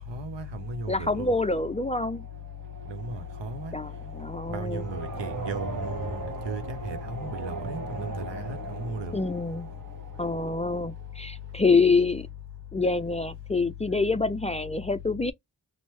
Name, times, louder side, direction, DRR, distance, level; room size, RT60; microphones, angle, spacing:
voice 1, 0.0-1.3 2.9-3.7 4.5-6.2 6.5-9.1, right 1 dB, 80° right, 0.8 m, -35 dB
sound 1, 0.6-11.4, right 2 dB, 45° right, 1.1 m, -39 dB
voice 2, 0.9-2.3 3.7-4.8 9.1-9.7 10.2-12.3 12.7-15.3, left 3 dB, 15° left, 0.3 m, -26 dB
3.0 x 2.0 x 3.2 m
cardioid pair, 40°, 42 cm